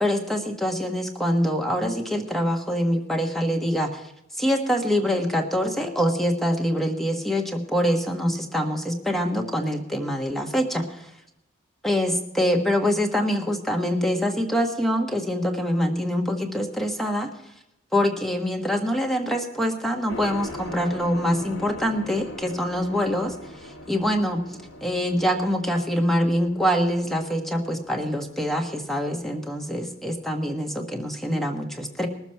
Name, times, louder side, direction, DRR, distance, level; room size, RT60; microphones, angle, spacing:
voice 1, 0.0-4.1 4.4-11.1 11.8-17.3 17.9-32.1, equal, ahead, 2 dB, 1.3 m, -25 dB
sound 1, 20.1-30.2, left 1 dB, 85° left, 1.7 m, -41 dB
21.0 x 7.2 x 4.5 m, 0.82 s
head